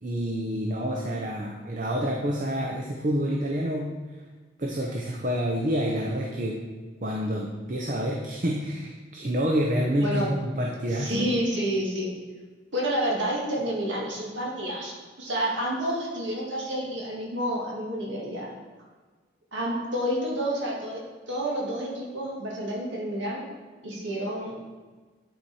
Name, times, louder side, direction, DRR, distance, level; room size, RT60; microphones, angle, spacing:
voice 1, 0.0-3.9 4.6-6.6 7.0-11.3, equal, 40° right, -1 dB, 0.8 m, -28 dB
voice 2, 10.0-10.3 10.9-12.1 12.7-18.5 19.5-23.4 23.8-24.5, equal, 70° right, -3 dB, 2.1 m, -29 dB
10.5 x 4.8 x 4.3 m, 1.4 s
head